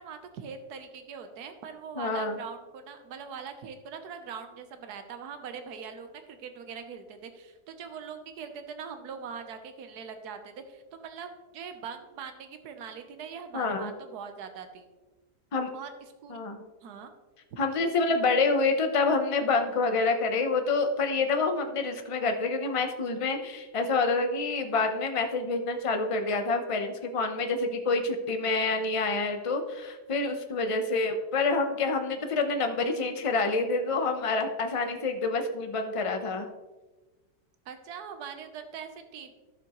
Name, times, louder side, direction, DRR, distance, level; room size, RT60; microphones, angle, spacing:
voice 1, 0.0-14.9 15.7-15.9 16.2-16.4 16.8-17.1 37.7-39.3, right 6 dB, 80° right, 8 dB, 1.4 m, -42 dB
voice 2, 2.0-2.4 13.5-13.9 15.5-15.7 16.3-16.6 17.6-36.5, left 3 dB, 30° left, 6 dB, 0.6 m, -27 dB
12.5 x 6.9 x 3.0 m, 1.2 s
omnidirectional pair, 1.7 m